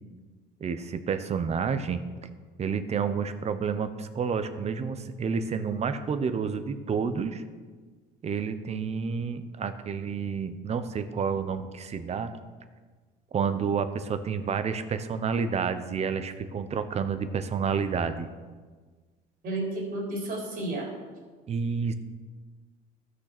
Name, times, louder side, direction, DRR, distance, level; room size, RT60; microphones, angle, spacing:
voice 1, 0.6-2.0 2.6-7.4 8.2-12.3 13.3-18.3 21.5-21.9, right 6 dB, 35° right, 11 dB, 0.9 m, -29 dB
voice 2, 19.4-20.9, right 2 dB, 50° right, -1 dB, 3.8 m, -32 dB
13.5 x 6.5 x 6.1 m, 1.4 s
supercardioid pair, 105°, 19 cm